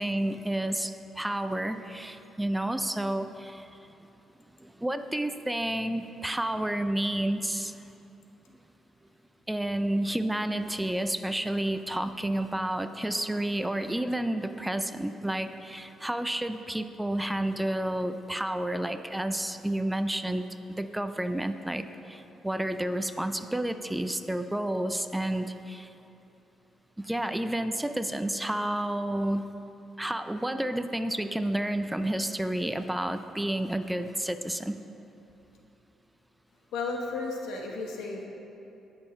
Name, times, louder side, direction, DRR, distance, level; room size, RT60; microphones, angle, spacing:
voice 1, 0.0-3.7 4.6-7.8 9.5-20.5 20.8-25.9 27.0-29.5 30.0-34.8, right 1 dB, 5° right, 9 dB, 0.4 m, -30 dB
voice 2, 36.7-38.3, left 3 dB, 85° left, 0 dB, 1.2 m, -33 dB
18.5 x 6.4 x 3.2 m, 2.9 s
cardioid pair, 90°, 0 cm